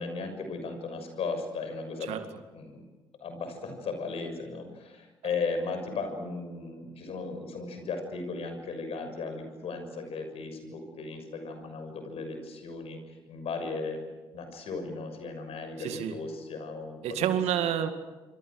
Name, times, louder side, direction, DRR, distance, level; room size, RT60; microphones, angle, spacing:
voice 1, 0.0-2.2 2.5-2.8 3.2-13.0 13.3-14.1 14.3-17.4, left 4 dB, 65° left, 7 dB, 6.5 m, -36 dB
voice 2, 15.8-16.1 17.0-17.9, right 10 dB, 70° right, 8 dB, 2.2 m, -28 dB
27.5 x 26.5 x 6.3 m, 1.2 s
hypercardioid pair, 50°, 11 cm